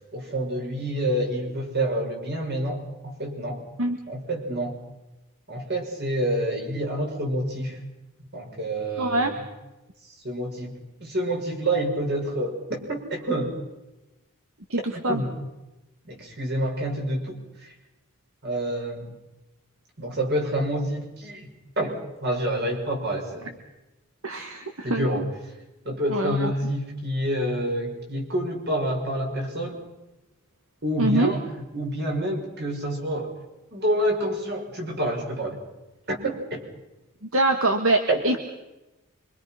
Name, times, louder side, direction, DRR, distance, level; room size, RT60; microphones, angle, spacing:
voice 1, 0.1-3.6 4.1-4.8 5.5-7.8 8.3-9.4 10.0-10.7 11.0-13.6 14.9-15.3 16.0-17.7 18.4-19.1 20.0-21.5 21.8-23.5 24.8-25.3 25.8-29.8 30.8-33.4 33.7-35.6 36.1-36.6 38.1-38.4, right 1 dB, 45° right, 1 dB, 6.3 m, -28 dB
voice 2, 9.0-9.4 14.7-14.8 15.0-15.2 24.2-25.2 26.1-26.5 31.0-31.3 37.3-38.4, right 2 dB, 65° right, 6 dB, 1.9 m, -24 dB
26.0 x 25.5 x 5.9 m, 1.0 s
head